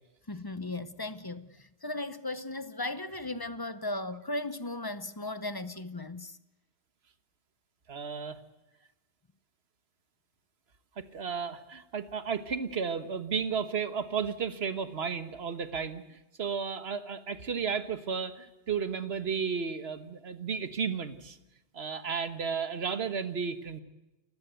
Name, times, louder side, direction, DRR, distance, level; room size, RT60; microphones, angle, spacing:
voice 1, 0.3-6.4, left 2 dB, 25° left, 0.7 m, -36 dB
voice 2, 7.9-8.4 11.0-21.4 21.7-23.8, right 6 dB, 65° right, 1.6 m, -33 dB
29.0 x 16.0 x 8.2 m
omnidirectional pair, 1.2 m